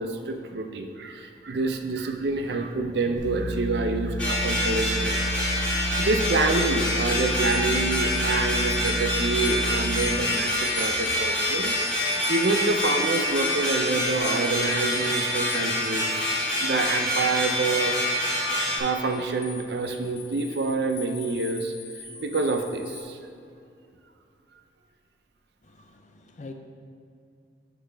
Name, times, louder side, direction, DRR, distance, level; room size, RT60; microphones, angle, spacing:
voice 1, 0.0-5.6 6.0-11.7 12.3-16.3 16.6-18.0 18.8-21.7 22.2-23.2, right 3 dB, 70° right, 6 dB, 0.5 m, -27 dB
sound 1, 3.2-10.0, right 1 dB, 40° right, 1.7 m, -31 dB
sound 2, 4.2-18.8, left 1 dB, 5° left, 1.5 m, -26 dB
sound 3, 7.3-16.5 19.0-23.0, left 6 dB, 80° left, 0.8 m, -43 dB
voice 2, 25.6-26.5, left 3 dB, 40° left, 5 dB, 0.5 m, -44 dB
11.0 x 4.0 x 3.4 m, 2.5 s
head